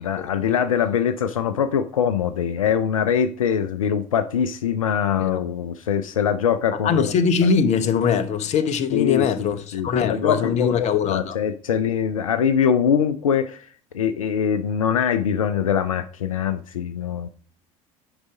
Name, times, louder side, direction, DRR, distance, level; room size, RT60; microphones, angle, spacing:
voice 1, 0.0-7.1 7.4-7.5 8.9-17.3, left 8 dB, 75° left, 0.5 m, -23 dB
voice 2, 6.8-11.4, left 6 dB, 40° left, 0.9 m, -22 dB
9.7 x 4.0 x 4.9 m
figure-of-eight pair, 65°, 17 cm